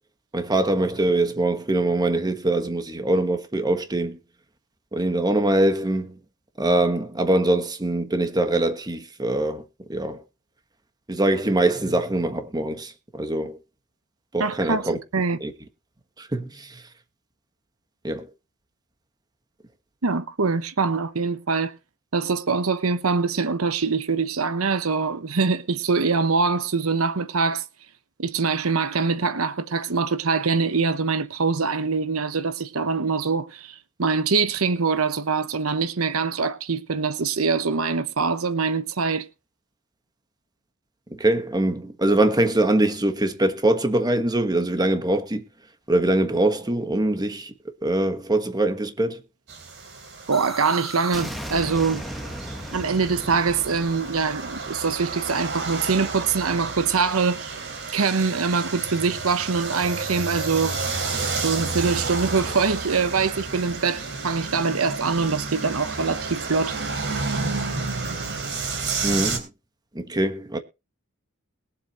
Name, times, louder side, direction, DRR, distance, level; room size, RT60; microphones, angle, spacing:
voice 1, 0.3-4.2 4.9-6.2 6.6-9.6 9.9-10.2 11.1-13.6 14.3-15.0 15.4-15.5 16.2-16.8 18.0-18.3 41.1-45.4 45.9-47.5 47.8-49.2 69.0-69.5 69.9-70.6, right 1 dB, 20° right, 1.4 m, -23 dB
voice 2, 14.4-15.4 20.0-21.7 22.1-27.6 28.2-39.3 50.3-52.0 52.7-57.6 57.9-60.8 61.4-66.8, right 4 dB, 85° right, 1.0 m, -24 dB
sound 1, 49.5-69.4, right 4 dB, 55° right, 3.4 m, -31 dB
sound 2, 50.3-56.0, equal, ahead, 1.2 m, -37 dB
21.5 x 7.6 x 3.0 m
head